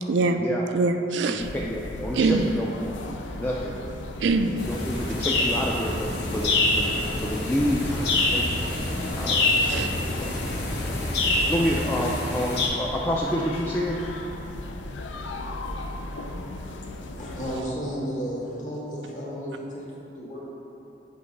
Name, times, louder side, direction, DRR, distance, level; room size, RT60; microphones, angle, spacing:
voice 1, 0.1-0.5 0.7-1.5 2.1-2.5 4.2-4.6 9.7-9.9, right 3 dB, 80° right, 7 dB, 0.4 m, -23 dB
sound 1, 1.4-17.6, left 2 dB, 85° left, 0.5 m, -36 dB
voice 2, 1.5-2.9 3.4-3.8 4.7-8.7 9.1-9.9 10.2-10.3 11.5-14.0, equal, 10° left, -4 dB, 0.3 m, -29 dB
sound 2, 4.6-12.7, left 2 dB, 65° left, 1.1 m, -26 dB
voice 3, 17.1-20.5, equal, 45° left, -5 dB, 1.3 m, -33 dB
8.0 x 3.0 x 5.4 m, 3.0 s
head